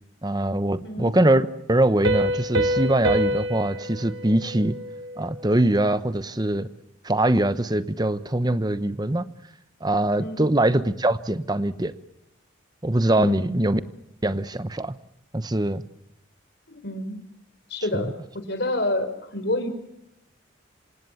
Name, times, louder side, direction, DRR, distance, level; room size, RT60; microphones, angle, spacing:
voice 1, 0.2-4.8 5.2-6.7 7.0-9.3 9.8-11.9 12.8-13.8 14.2-14.9 15.3-15.8 17.9-18.1, right 1 dB, 20° right, 13 dB, 0.9 m, -23 dB
Piano, 2.0-5.5, equal, 75° right, 3.5 m, -26 dB
voice 2, 13.1-13.6 16.7-17.2 17.7-19.7, left 1 dB, 55° left, 8 dB, 4.7 m, -28 dB
27.5 x 26.0 x 7.1 m, 0.84 s
head